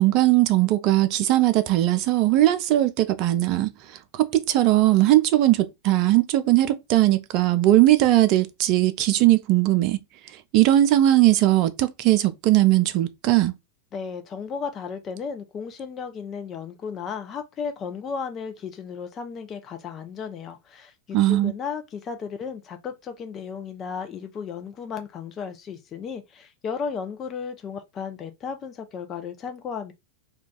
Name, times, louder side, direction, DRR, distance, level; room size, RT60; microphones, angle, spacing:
voice 1, 0.0-3.7 4.1-10.0 10.5-13.5 21.1-21.5, right 15 dB, 40° right, 0.4 m, -19 dB
voice 2, 13.9-29.9, left 6 dB, 30° left, 0.5 m, -34 dB
2.3 x 2.3 x 3.7 m
figure-of-eight pair, 90°, 0 cm